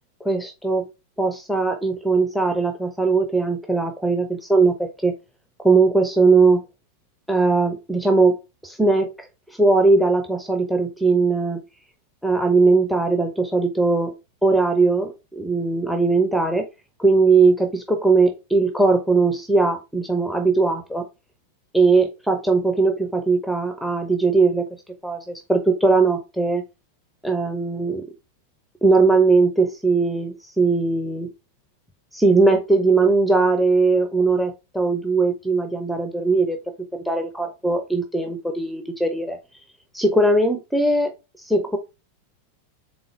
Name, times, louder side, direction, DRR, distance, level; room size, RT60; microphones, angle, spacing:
voice 1, 0.2-0.9 1.2-5.1 5.6-6.6 7.3-9.1 9.5-11.6 12.2-16.7 17.0-21.0 21.7-24.7 25.0-26.6 27.2-28.1 28.8-31.3 32.1-36.6 36.9-39.4 39.9-41.1 41.4-41.8, right 3 dB, ahead, 0.6 m, -19 dB
3.9 x 3.6 x 3.1 m
figure-of-eight pair, 90°, 0 cm